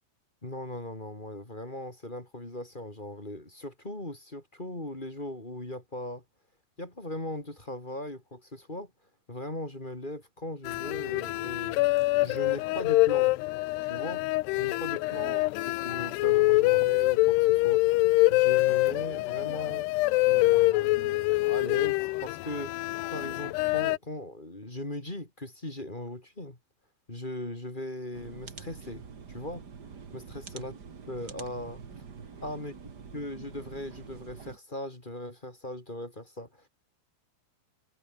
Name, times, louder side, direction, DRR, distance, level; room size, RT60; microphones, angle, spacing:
voice 1, 0.4-6.2 6.8-8.9 9.3-11.8 12.2-13.4 13.8-14.3 14.5-19.9 20.3-26.6 27.1-29.6 30.1-30.7 31.0-31.8 32.4-32.7 33.1-36.7, left 1 dB, 15° left, 2.9 m, -39 dB
sound 1, 10.7-24.0, left 21 dB, 85° left, 2.7 m, -25 dB
sound 2, 28.1-34.6, right 6 dB, 40° right, 1.6 m, -46 dB
omnidirectional pair, 4.8 m